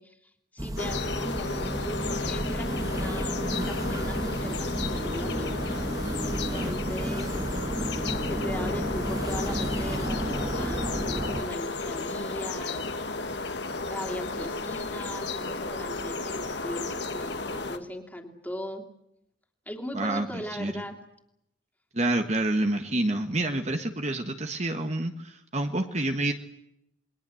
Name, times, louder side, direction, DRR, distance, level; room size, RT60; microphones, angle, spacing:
voice 1, 0.0-5.5 6.2-7.3 8.1-13.1 13.9-18.9 19.7-21.0, left 1 dB, 10° left, 4 dB, 3.0 m, -39 dB
sound 1, 0.6-11.4, right 1 dB, 20° right, 1.4 m, -32 dB
sound 2, 0.8-17.8, left 3 dB, 60° left, 1.9 m, -33 dB
voice 2, 19.9-20.7 21.9-26.3, right 1 dB, 35° right, 5 dB, 1.5 m, -28 dB
28.5 x 21.5 x 7.8 m, 0.79 s
head